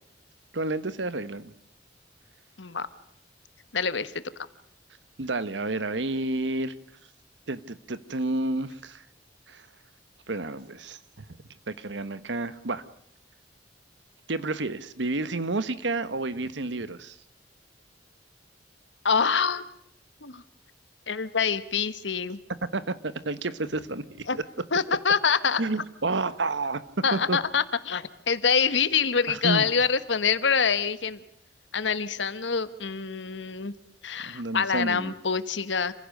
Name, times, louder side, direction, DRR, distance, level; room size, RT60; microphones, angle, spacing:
voice 1, 0.5-1.5 5.2-6.7 7.5-9.0 9.5-9.6 10.3-11.3 11.7-12.8 14.3-17.2 22.7-24.0 25.6-26.8 27.1-27.4 29.3-29.7 34.2-35.1, right 2 dB, 75° right, 15 dB, 1.2 m, -30 dB
voice 2, 3.7-4.2 19.0-19.6 20.2-20.4 21.1-22.4 24.3-24.4 24.7-25.6 27.0-31.2 31.7-33.7 34.0-35.9, left 6 dB, 80° left, 14 dB, 1.3 m, -25 dB
28.0 x 15.5 x 6.6 m, 0.75 s
head